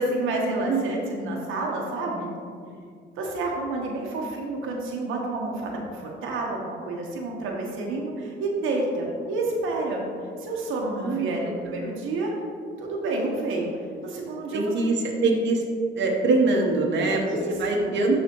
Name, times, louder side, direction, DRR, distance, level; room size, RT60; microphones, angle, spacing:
voice 1, 0.0-2.3 3.1-10.0 10.4-12.3 12.8-13.7 14.0-14.7 17.2-17.9, right 2 dB, 85° right, -1 dB, 1.1 m, -29 dB
voice 2, 11.0-11.5 14.5-15.6 16.0-17.2 17.6-18.2, right 3 dB, 65° right, -1 dB, 1.0 m, -23 dB
12.0 x 4.1 x 3.0 m, 2.2 s
cardioid pair, 90°, 20 cm